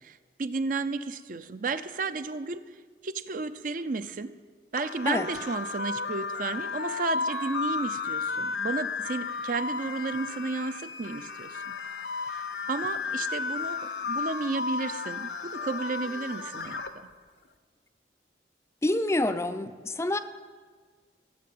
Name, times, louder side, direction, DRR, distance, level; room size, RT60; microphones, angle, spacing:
voice 1, 0.0-2.7 3.0-4.3 4.7-11.7 12.3-17.1, right 3 dB, 50° right, 11 dB, 0.5 m, -33 dB
sound 1, 4.8-16.9, left 4 dB, 70° left, 0.8 m, -33 dB
voice 2, 18.8-20.2, left 1 dB, 15° left, 10 dB, 0.4 m, -27 dB
14.0 x 7.6 x 7.8 m, 1.5 s
head